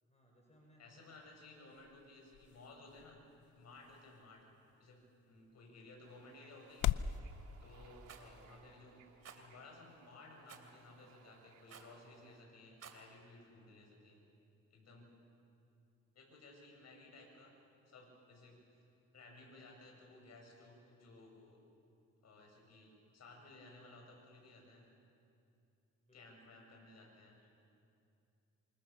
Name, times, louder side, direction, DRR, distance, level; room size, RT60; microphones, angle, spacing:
voice 1, 0.0-1.7 26.0-26.5, equal, 20° left, -1 dB, 5.7 m, -68 dB
voice 2, 0.8-3.2 3.5-4.4 4.8-5.0 5.3-7.1 7.6-9.0 9.3-14.2 14.7-15.1 16.1-17.5 17.9-18.8 19.1-21.6 22.2-24.8 26.1-27.4, left 2 dB, 60° left, 1 dB, 7.6 m, -58 dB
sound 1, 0.9-7.2, left 11 dB, 80° left, 0.7 m, -43 dB
Bird / Ocean, 6.0-12.4, right 7 dB, 80° right, 2.8 m, -66 dB
Rattle, 8.1-8.3 9.2-9.4 10.5-10.7 11.7-12.0 12.7-13.0, right 7 dB, 55° right, 2.9 m, -54 dB
26.5 x 26.5 x 7.0 m, 2.6 s
cardioid pair, 90°, 30 cm